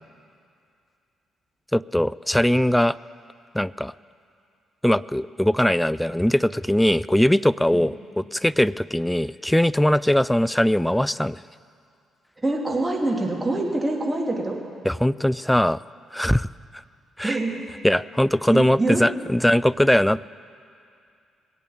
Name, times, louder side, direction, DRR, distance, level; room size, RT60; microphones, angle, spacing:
voice 1, 1.7-3.0 3.5-3.9 4.8-11.4 14.9-15.8 16.1-16.5 17.2-17.4 17.8-20.3, left 1 dB, 5° left, 18 dB, 0.3 m, -21 dB
voice 2, 12.4-14.5 17.2-17.5 18.5-19.0, right 2 dB, 20° right, -1 dB, 2.8 m, -25 dB
21.5 x 8.3 x 7.1 m, 2.4 s
figure-of-eight pair, 40°, 0 cm